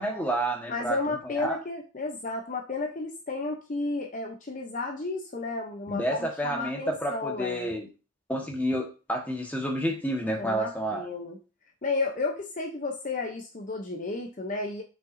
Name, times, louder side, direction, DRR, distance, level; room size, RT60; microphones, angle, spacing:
voice 1, 0.0-1.0 1.2-1.6 5.9-7.9 8.3-11.0, right 1 dB, 10° left, 1 dB, 1.5 m, -30 dB
voice 2, 0.7-7.7 10.4-11.4 11.8-14.8, left 3 dB, 40° left, 2 dB, 0.8 m, -32 dB
7.5 x 5.7 x 2.7 m, 0.32 s
head